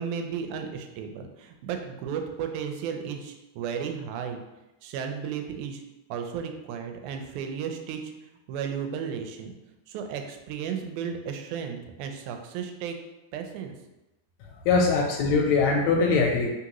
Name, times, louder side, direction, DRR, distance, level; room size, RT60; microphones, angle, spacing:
voice 1, 0.0-4.4 4.8-5.8 6.1-8.1 8.5-9.5 9.9-13.0 13.3-13.8, right 7 dB, 85° right, 5 dB, 2.0 m, -34 dB
voice 2, 14.6-16.5, left 4 dB, 80° left, 1 dB, 1.7 m, -22 dB
3.9 x 3.7 x 2.9 m, 0.99 s
omnidirectional pair, 3.4 m